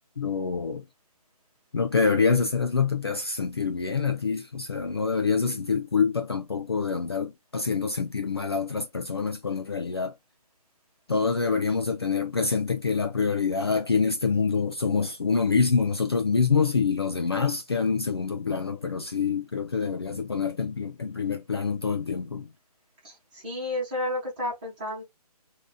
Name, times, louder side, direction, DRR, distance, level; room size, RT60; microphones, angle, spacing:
voice 1, 0.2-0.8 1.7-10.1 11.1-22.5, left 5 dB, 40° left, 0.4 m, -26 dB
voice 2, 23.0-25.0, left 1 dB, 15° right, 1.4 m, -31 dB
4.8 x 2.7 x 2.2 m
hypercardioid pair, 175°, 20 cm